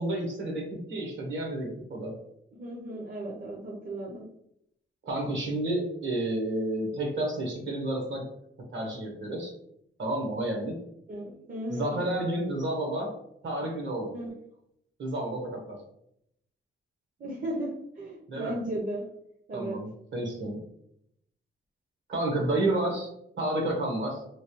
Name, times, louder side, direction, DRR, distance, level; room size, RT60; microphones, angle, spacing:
voice 1, 0.0-2.2 5.0-8.3 8.7-9.5 10.0-10.8 11.7-13.1 13.4-14.1 15.0-15.8 18.3-18.5 19.5-20.6 22.1-24.2, right 1 dB, 65° right, 1 dB, 1.0 m, -30 dB
voice 2, 2.5-4.3 11.1-12.0 14.1-14.3 17.2-19.0 19.5-19.8, right 1 dB, 40° right, -3 dB, 0.6 m, -35 dB
3.1 x 2.9 x 2.9 m, 0.75 s
wide cardioid pair, 175°, 21 cm